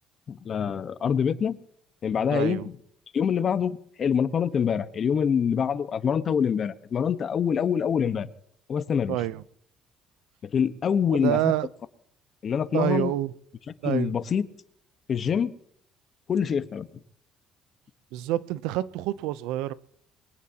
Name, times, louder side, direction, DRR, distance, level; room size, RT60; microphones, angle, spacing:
voice 1, 0.3-1.6 2.0-2.7 3.1-8.3 8.7-9.2 10.4-11.5 12.4-13.1 13.8-14.5 15.1-15.5 16.3-16.9, left 7 dB, 50° left, 1.2 m, -25 dB
voice 2, 2.3-2.7 9.1-9.4 11.1-11.7 12.7-13.3 13.8-14.1 18.1-19.7, right 14 dB, 80° right, 0.7 m, -27 dB
23.0 x 18.0 x 2.9 m
supercardioid pair, 65°, 0 cm